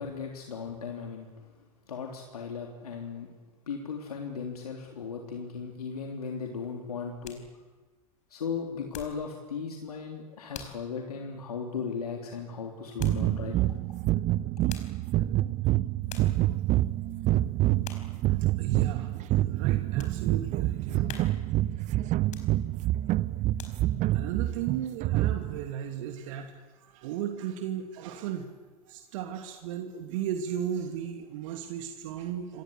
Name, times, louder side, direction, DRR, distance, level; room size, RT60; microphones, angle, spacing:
voice 1, 0.0-3.3 3.7-7.4 8.3-13.5, left 5 dB, 80° left, 1 dB, 3.5 m, -37 dB
sound 1, 6.7-9.3 9.7-10.0 10.5-10.9 11.3-11.4 13.0-13.3 14.4-15.1 15.7-15.8 16.1-16.5 17.0-17.3 17.8-18.2 18.7-18.8 19.3-20.2 20.6-20.7 21.1-21.6 22.2-22.9 23.3-24.1 24.5-24.6, left 8 dB, 40° left, 4.9 m, -46 dB
sound 2, 13.0-25.7, right 15 dB, 40° right, 0.9 m, -27 dB
voice 2, 18.6-21.2 24.1-28.5 28.9-32.6, right 9 dB, 60° right, 5 dB, 2.6 m, -35 dB
28.0 x 25.0 x 8.4 m, 1.3 s
hypercardioid pair, 90°, 19 cm